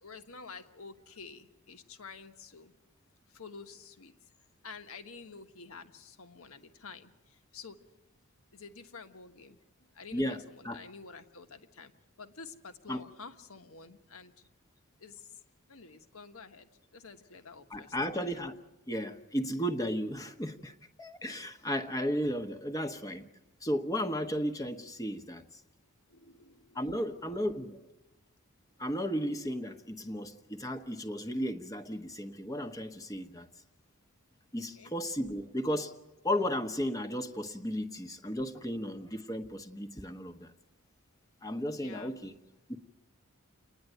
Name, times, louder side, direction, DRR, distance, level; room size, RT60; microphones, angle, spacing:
voice 1, 0.0-2.7 3.3-4.2 4.6-7.8 8.5-9.6 9.9-11.9 12.2-14.3 15.0-15.4 15.7-17.9 26.1-27.0 34.5-34.9 41.7-42.2, left 4 dB, 75° left, 7 dB, 1.3 m, -49 dB
voice 2, 10.1-10.8 12.9-13.0 17.7-18.5 18.9-20.7 21.0-23.2 23.6-25.4 26.7-27.8 28.8-33.5 34.5-35.9 36.2-40.5 41.4-42.3, equal, 15° left, 7 dB, 1.0 m, -34 dB
29.0 x 10.5 x 9.3 m, 1.0 s
head